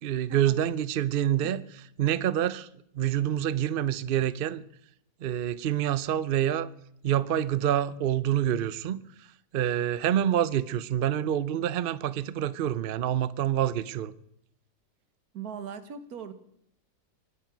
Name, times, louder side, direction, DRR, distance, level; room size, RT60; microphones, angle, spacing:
voice 1, 0.0-1.6 2.0-2.7 2.9-4.6 5.2-6.7 7.0-9.3 9.5-14.1, right 10 dB, 75° right, 0.5 m, -27 dB
voice 2, 15.3-16.3, right 7 dB, 60° right, 1.7 m, -40 dB
24.0 x 8.6 x 6.0 m
omnidirectional pair, 1.9 m